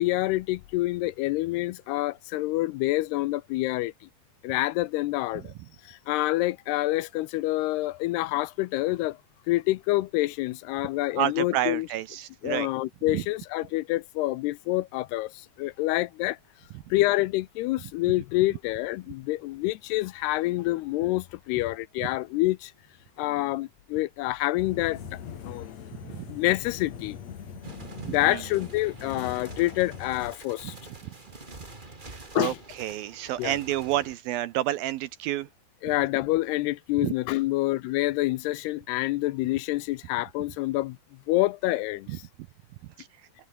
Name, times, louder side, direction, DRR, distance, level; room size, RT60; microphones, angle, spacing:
voice 1, 0.0-3.9 4.4-5.5 5.8-9.2 9.5-11.9 12.4-16.4 16.9-22.7 23.2-25.2 25.4-25.7 26.3-27.2 28.1-30.8 32.4-32.6 33.4-33.6 35.8-41.0 41.3-42.2, left 18 dB, 80° left, 2.7 m, -27 dB
voice 2, 11.2-12.7 13.1-13.2 26.0-26.3 28.0-28.4 32.1-35.5 37.0-37.1 42.1-42.2 43.0-43.1, right 14 dB, 75° right, 2.3 m, -30 dB
sound 1, 24.6-30.3, left 8 dB, 45° left, 2.9 m, -41 dB
sound 2, 27.6-34.2, right 2 dB, 15° right, 2.0 m, -46 dB
omnidirectional pair, 4.9 m